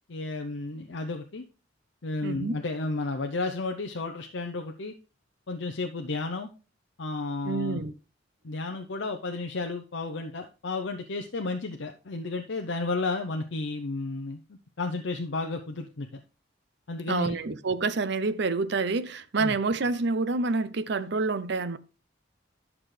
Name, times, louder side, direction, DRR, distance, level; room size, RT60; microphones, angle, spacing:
voice 1, 0.1-1.4 2.0-4.9 5.5-6.5 7.0-7.8 8.4-14.4 14.8-16.2 16.9-17.4 19.4-19.6, left 3 dB, 70° left, 0.7 m, -32 dB
voice 2, 2.2-2.6 7.4-7.9 17.1-21.8, right 3 dB, 60° right, 0.6 m, -28 dB
11.0 x 6.0 x 3.3 m
head